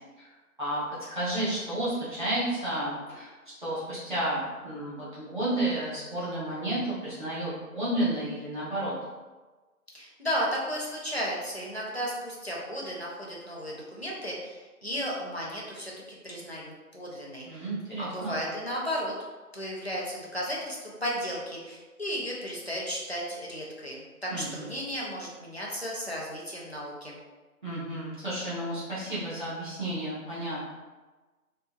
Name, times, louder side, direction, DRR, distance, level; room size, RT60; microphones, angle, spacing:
voice 1, 1.1-3.3 3.6-8.9 17.5-18.3 24.3-24.7 27.6-30.7, right 1 dB, 30° right, -12 dB, 0.9 m, -31 dB
voice 2, 9.9-15.9 16.2-17.7 18.0-19.1 19.5-27.2, equal, 45° left, -4 dB, 0.5 m, -34 dB
2.8 x 2.2 x 2.3 m, 1.3 s
figure-of-eight pair, 170°, 46 cm